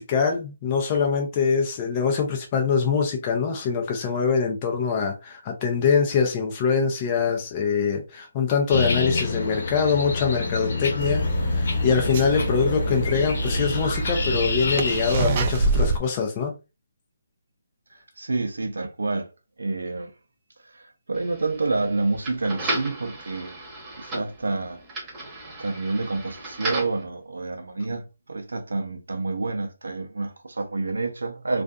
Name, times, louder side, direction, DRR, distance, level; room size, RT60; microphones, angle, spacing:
voice 1, 0.0-16.5, left 6 dB, 25° left, 0.5 m, -24 dB
sound 1, 8.7-15.2, left 3 dB, 60° left, 0.9 m, -28 dB
sound 2, 11.0-16.0, right 3 dB, 35° right, 0.3 m, -26 dB
voice 2, 17.9-19.3 19.6-20.1 20.6-23.6 24.0-24.8 25.5-31.6, right 3 dB, 85° right, 0.6 m, -28 dB
sound 3, 21.1-27.0, right 2 dB, 15° right, 1.0 m, -35 dB
2.5 x 2.4 x 2.3 m
hypercardioid pair, 160°, 0 cm